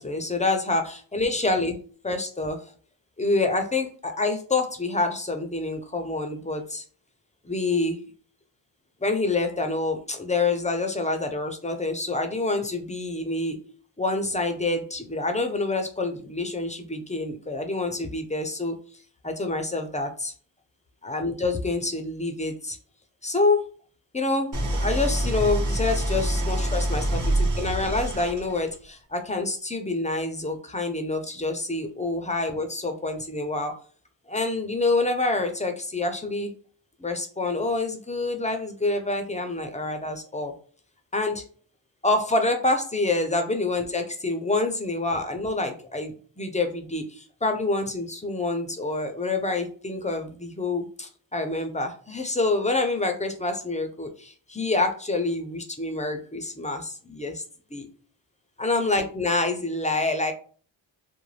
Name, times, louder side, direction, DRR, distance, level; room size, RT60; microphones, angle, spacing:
voice 1, 0.0-1.8 2.0-2.6 3.2-6.8 7.4-8.0 9.0-13.6 14.0-18.8 19.2-20.3 21.0-22.8 23.2-23.6 24.1-33.7 34.3-36.5 37.0-40.5 41.1-41.4 42.0-57.4 57.7-57.9 58.6-60.3, left 2 dB, 15° left, 5 dB, 0.5 m, -27 dB
Idling, 24.5-28.7, right 1 dB, 40° right, 1.0 m, -26 dB
2.4 x 2.2 x 3.2 m, 0.43 s
cardioid pair, 60°, 46 cm